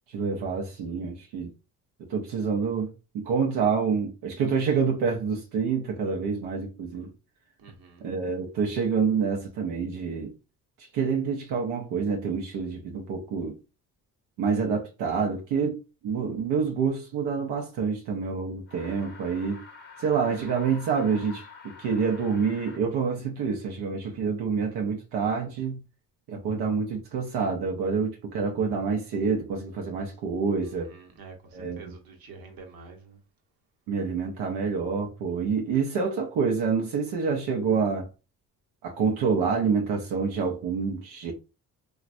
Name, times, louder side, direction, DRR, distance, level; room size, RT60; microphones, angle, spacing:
voice 1, 0.1-1.5 2.1-7.1 8.0-10.3 10.8-13.6 14.4-19.6 20.0-21.5 21.8-25.8 26.3-30.9 31.5-31.9 33.9-38.1 38.8-41.3, right 5 dB, 90° right, 0.7 m, -27 dB
voice 2, 7.6-8.0 30.6-33.2, right 4 dB, 65° right, 1.0 m, -47 dB
sound 1, 18.7-22.8, left 5 dB, 25° left, 0.8 m, -47 dB
3.1 x 2.3 x 2.5 m
cardioid pair, 90°, 38 cm